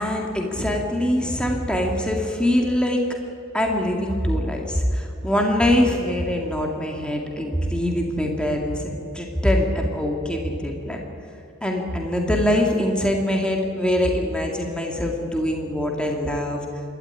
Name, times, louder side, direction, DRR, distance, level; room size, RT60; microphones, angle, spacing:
voice 1, 0.0-3.0 3.5-11.0 11.6-16.6, left 1 dB, 5° left, 1 dB, 2.3 m, -23 dB
27.0 x 12.5 x 9.8 m, 2.7 s
head